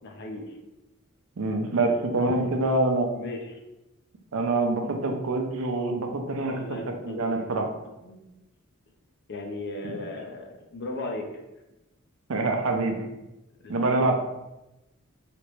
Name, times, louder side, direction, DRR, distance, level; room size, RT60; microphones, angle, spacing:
voice 1, 0.0-0.5 2.3-2.5 3.1-3.6 6.4-7.5 8.0-8.2 9.3-11.3 13.6-13.7, left 2 dB, 55° left, 2 dB, 0.6 m, -37 dB
voice 2, 1.4-3.1 4.3-6.8 7.0-7.7 9.8-9.9 12.3-13.0 13.7-14.2, right 2 dB, 70° right, 3 dB, 0.5 m, -25 dB
3.3 x 2.9 x 3.1 m, 0.97 s
head